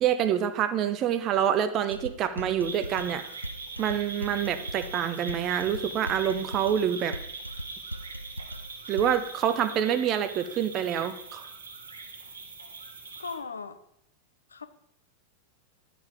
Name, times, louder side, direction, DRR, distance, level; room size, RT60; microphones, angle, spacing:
voice 1, 0.0-3.3 3.8-7.2 8.9-11.5, right 9 dB, 35° right, 11 dB, 0.6 m, -27 dB
sound 1, 1.9-9.3, right 1 dB, 85° right, 0.4 m, -40 dB
sound 2, 2.6-13.4, right 3 dB, 70° right, 1.5 m, -42 dB
voice 2, 13.2-13.8 14.5-14.7, left 5 dB, 75° left, 10 dB, 0.6 m, -37 dB
10.5 x 5.1 x 4.9 m, 0.73 s
figure-of-eight pair, 90°, 0 cm